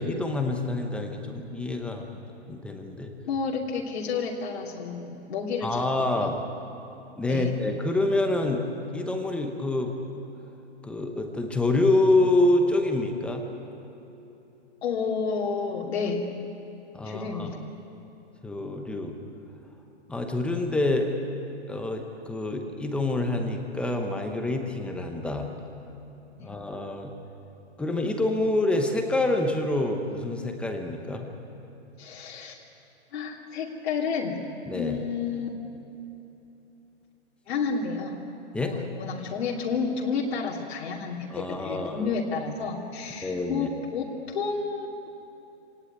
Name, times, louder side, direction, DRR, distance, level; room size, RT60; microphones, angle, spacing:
voice 1, 0.0-2.1 2.5-3.1 5.6-6.4 7.2-8.7 8.9-9.9 10.8-13.4 16.9-17.5 18.4-19.1 20.1-21.1 21.7-25.5 26.4-27.1 27.8-31.3 34.7-35.0 38.5-38.7 41.3-42.1 43.2-43.7, left 2 dB, 5° left, 3 dB, 0.8 m, -26 dB
voice 2, 3.3-6.3 7.3-7.5 14.8-16.3 17.0-17.6 26.4-26.5 32.0-32.6 33.1-34.4 34.7-35.5 37.5-38.1 38.6-45.1, left 5 dB, 60° left, -2 dB, 2.8 m, -31 dB
25.5 x 18.5 x 9.5 m, 3.0 s
hypercardioid pair, 165°, 35 cm